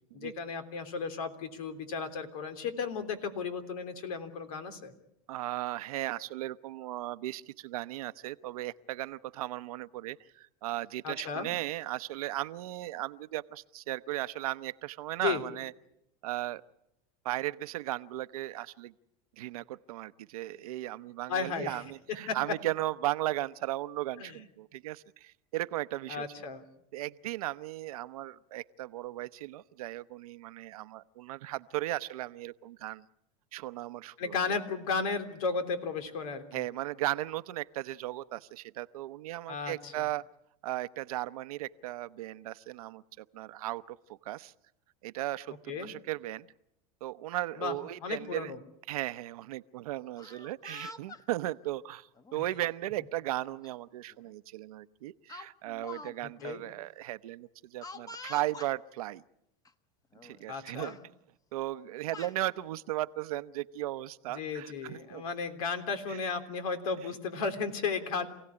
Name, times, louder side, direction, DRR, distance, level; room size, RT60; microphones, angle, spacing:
voice 1, 0.1-4.9 11.0-11.5 15.2-15.4 21.3-21.8 22.3-22.4 24.2-24.4 26.1-26.6 34.2-36.6 39.5-39.9 45.7-45.9 47.6-47.7 48.0-48.6 52.3-52.4 56.2-56.6 60.5-61.0 64.3-68.3, left 5 dB, 85° left, 8 dB, 3.4 m, -34 dB
voice 2, 5.3-15.7 16.2-16.6 17.2-18.9 19.4-26.2 26.9-33.1 33.5-34.3 36.5-40.2 40.6-44.5 45.0-46.5 47.0-48.5 48.9-59.2 60.2-61.0 61.5-65.2 66.1-66.2, right 16 dB, 85° right, 14 dB, 0.8 m, -36 dB
Speech, 50.0-51.2 52.2-52.4 53.6-53.7 54.1-54.3 55.3-56.1 56.4-56.5 57.8-58.7 59.6-59.7 60.1-60.5 60.8-61.0 61.8-62.4, left 3 dB, 20° left, 1.2 m, -46 dB
27.5 x 17.0 x 9.8 m, 0.82 s
supercardioid pair, 110°, 18 cm